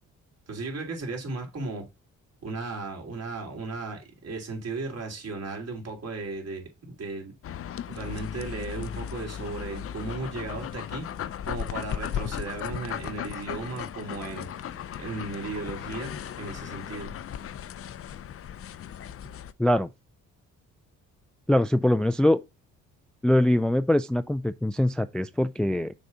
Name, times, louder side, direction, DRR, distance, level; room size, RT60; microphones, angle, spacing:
voice 1, 0.5-1.8 2.4-7.4 7.9-11.1 11.4-17.1, right 3 dB, 55° right, 3.1 m, -36 dB
sound 1, 7.4-19.5, left 9 dB, 50° left, 0.6 m, -36 dB
voice 2, 21.5-22.4 23.2-25.9, left 1 dB, 5° left, 0.3 m, -23 dB
6.5 x 4.1 x 5.9 m
cardioid pair, 90°, 30 cm